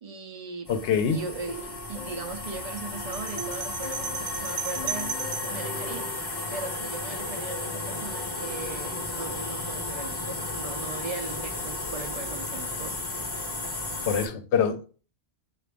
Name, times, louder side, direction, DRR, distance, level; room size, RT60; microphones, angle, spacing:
voice 1, 0.0-0.7 1.1-5.2 5.4-6.2 6.5-13.0, right 4 dB, 50° right, 0.4 m, -38 dB
voice 2, 0.7-1.2 14.1-14.9, left 7 dB, 85° left, 0.9 m, -25 dB
sound 1, 0.7-14.3, left 2 dB, 25° left, 0.8 m, -34 dB
sound 2, 1.2-6.2, left 2 dB, 55° left, 0.5 m, -42 dB
sound 3, 3.1-5.6, right 8 dB, 75° right, 1.0 m, -35 dB
4.8 x 2.4 x 3.4 m
omnidirectional pair, 1.1 m